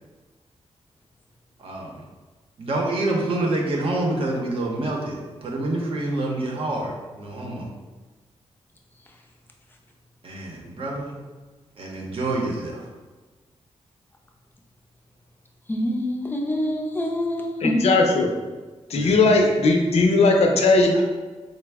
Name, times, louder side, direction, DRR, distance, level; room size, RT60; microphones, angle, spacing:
voice 1, 1.6-2.1 2.6-7.7 10.2-11.2 11.8-12.9 18.9-19.1, right 2 dB, 55° right, -1 dB, 0.7 m, -27 dB
voice 2, 15.7-17.9, left 1 dB, 20° left, 0 dB, 0.4 m, -25 dB
voice 3, 17.6-18.3 18.9-21.0, left 3 dB, 75° left, 2 dB, 0.5 m, -18 dB
4.1 x 2.0 x 3.4 m, 1.3 s
wide cardioid pair, 155°, 11 cm